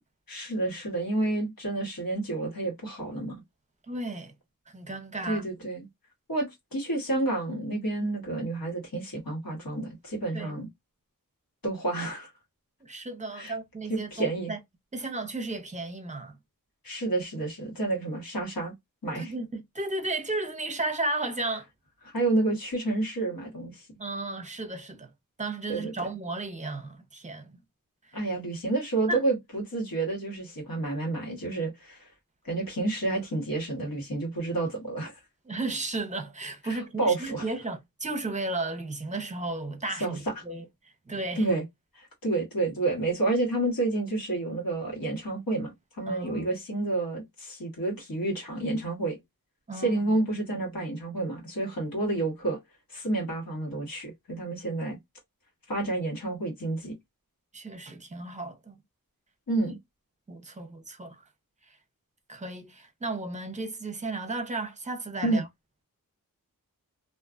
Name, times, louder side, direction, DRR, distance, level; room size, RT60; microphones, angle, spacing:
voice 1, 0.3-3.4 5.3-5.9 6.3-10.7 11.6-12.3 13.3-13.5 13.9-14.5 16.8-18.7 19.0-19.3 22.0-23.9 25.7-25.9 28.1-32.1 32.4-35.2 36.6-37.5 40.0-40.2 41.3-41.6 41.9-49.2 49.8-52.6 52.9-55.0 55.7-56.9 59.5-59.8 65.2-65.4, right 2 dB, 75° left, 1.3 m, -29 dB
voice 2, 3.9-4.3 4.7-5.4 10.3-10.6 12.8-14.6 14.9-16.4 19.2-21.7 24.0-25.1 25.4-27.6 28.0-28.2 29.1-29.2 35.4-41.5 46.1-46.5 49.7-50.1 57.5-58.8 60.3-61.2 61.7-61.8 62.3-65.4, right 2 dB, 20° right, 0.6 m, -34 dB
2.5 x 2.3 x 2.4 m
wide cardioid pair, 60°, 35 cm